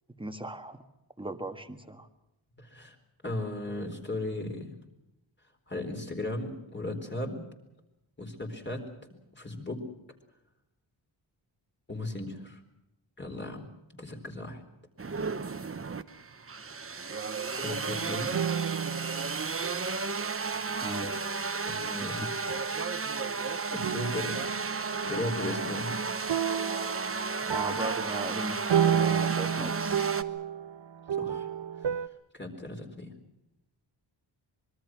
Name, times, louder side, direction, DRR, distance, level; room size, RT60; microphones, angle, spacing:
voice 1, 0.2-0.8 1.2-2.1 20.8-21.2 22.2-22.3 27.5-30.1, right 2 dB, 10° right, 7 dB, 1.7 m, -38 dB
voice 2, 2.6-3.0 3.2-4.8 5.7-7.4 8.2-8.9 9.3-9.8 11.9-12.6 13.2-14.6 17.6-18.4 21.6-22.3 23.7-24.4 25.0-26.0 31.1-31.5 31.8-32.0 32.3-33.1, left 2 dB, 25° left, 3 dB, 4.2 m, -36 dB
sound 1, 15.0-30.2, right 4 dB, 30° right, 1.0 m, -33 dB
sound 2, 18.3-20.1 21.0-21.4 22.5-23.3 23.8-25.1 26.3-32.1, right 8 dB, 65° right, 0.9 m, -31 dB
25.0 x 22.5 x 6.2 m, 0.92 s
wide cardioid pair, 135°, 46 cm